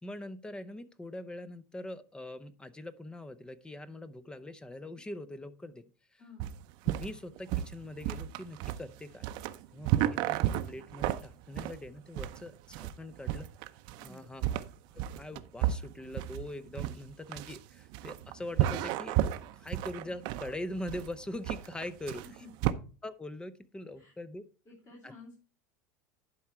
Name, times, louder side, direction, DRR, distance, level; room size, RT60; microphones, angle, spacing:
voice 1, 0.0-5.8 6.1-6.2 6.9-9.2 9.7-10.4 10.7-13.5 14.0-14.4 14.9-19.2 19.5-22.2 23.0-24.4 25.0-25.1, left 1 dB, 10° left, 15 dB, 0.7 m, -42 dB
voice 2, 6.2-6.5 14.0-14.4 22.0-22.7 23.9-24.1 24.6-25.3, left 2 dB, 30° left, -4 dB, 3.3 m, -53 dB
sound 1, 6.4-22.7, right 13 dB, 60° right, 0.6 m, -33 dB
11.0 x 4.8 x 4.4 m, 0.36 s
supercardioid pair, 115°, 9 cm